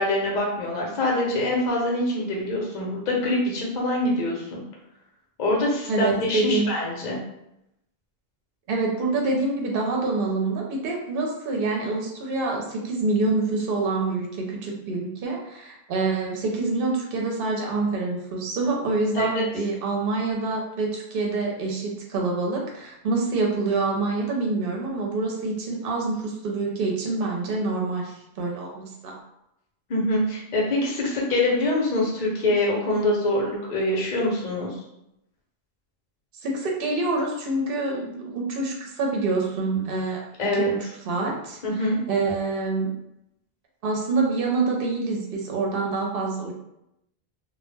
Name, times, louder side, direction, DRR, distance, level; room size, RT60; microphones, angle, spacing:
voice 1, 0.0-4.6 5.4-7.2 19.1-19.5 29.9-34.8 40.4-40.7 41.6-42.0, left 1 dB, 50° left, -2 dB, 0.8 m, -24 dB
voice 2, 5.9-6.7 8.7-29.2 36.4-40.2 40.5-40.7 41.1-42.9 43.8-46.6, right 3 dB, 65° right, -1 dB, 0.8 m, -26 dB
2.1 x 2.1 x 3.2 m, 0.83 s
omnidirectional pair, 1.0 m